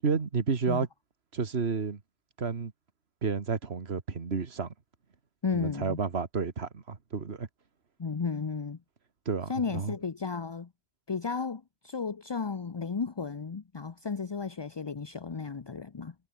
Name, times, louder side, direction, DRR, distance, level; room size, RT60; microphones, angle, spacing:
voice 1, 0.0-0.9 1.3-2.0 2.4-2.7 3.2-4.7 5.5-7.5 9.3-9.9, right 5 dB, 55° right, 1.9 m, -31 dB
voice 2, 5.4-6.0 8.0-8.8 9.5-10.7 11.1-16.1, left 5 dB, 35° left, 0.4 m, -34 dB
omnidirectional pair, 1.3 m